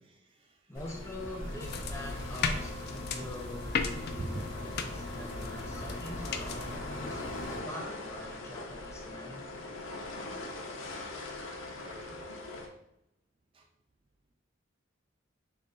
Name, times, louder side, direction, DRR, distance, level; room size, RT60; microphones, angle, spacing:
voice 1, 0.0-0.8 4.2-4.4 10.8-11.4 11.8-12.5 13.5-13.7, right 2 dB, 30° right, 3 dB, 0.4 m, -45 dB
sound 1, 0.7-12.7, left 2 dB, 85° left, 0.7 m, -42 dB
voice 2, 0.7-4.3 4.6-10.0, left 1 dB, 15° left, 1 dB, 0.7 m, -45 dB
sound 2, 0.7-7.6, equal, 75° right, 1.5 m, -43 dB
sound 3, 1.6-6.8, left 5 dB, 55° left, 0.4 m, -37 dB
3.3 x 3.2 x 4.0 m, 0.86 s
head